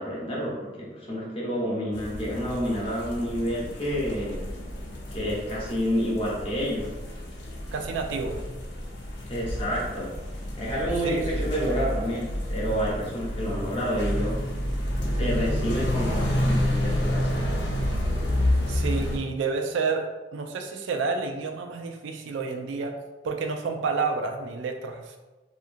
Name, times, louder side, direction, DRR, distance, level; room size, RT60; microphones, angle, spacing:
voice 1, 0.0-4.4 5.1-6.9 9.3-10.1 10.6-14.4 15.0-17.7, equal, 30° left, -5 dB, 0.7 m, -29 dB
sound 1, 1.9-19.2, left 1 dB, 75° left, 0.5 m, -29 dB
voice 2, 7.7-8.4 11.0-11.5 18.7-23.0 23.2-25.2, right 4 dB, 85° right, 4 dB, 0.3 m, -30 dB
2.6 x 2.4 x 2.5 m, 1.2 s
head